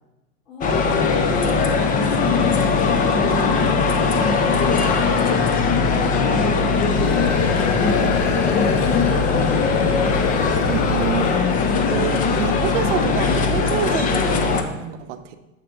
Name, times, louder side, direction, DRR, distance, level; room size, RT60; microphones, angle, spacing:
voice 1, 0.5-1.3 3.0-3.4 4.3-6.4 8.1-9.6, left 2 dB, 50° left, -4 dB, 2.3 m, -36 dB
sound 1, 0.6-14.6, left 4 dB, 20° left, 0.5 m, -19 dB
sound 2, 6.8-11.8, left 6 dB, 65° left, 0.9 m, -27 dB
voice 2, 10.6-11.4 11.8-15.4, right 10 dB, 65° right, 8 dB, 0.7 m, -27 dB
7.1 x 3.2 x 5.4 m, 0.99 s
hypercardioid pair, 110°, 40 cm